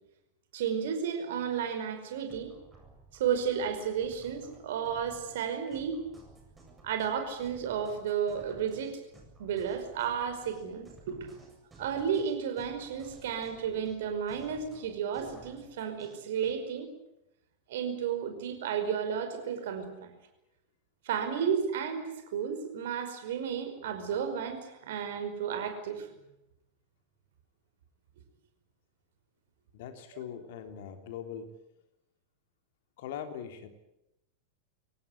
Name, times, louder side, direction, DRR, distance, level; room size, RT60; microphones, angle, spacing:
voice 1, 0.5-2.5 3.1-6.0 6.8-9.0 9.4-11.3 11.8-16.9 17.7-20.1 21.0-26.1, right 7 dB, 55° right, 7 dB, 5.2 m, -33 dB
sound 1, 2.3-16.6, right 3 dB, 15° right, 7.7 m, -56 dB
voice 2, 29.7-31.5 33.0-33.7, left 8 dB, 50° left, 7 dB, 3.4 m, -41 dB
25.0 x 18.0 x 9.6 m, 0.89 s
figure-of-eight pair, 90°, 0 cm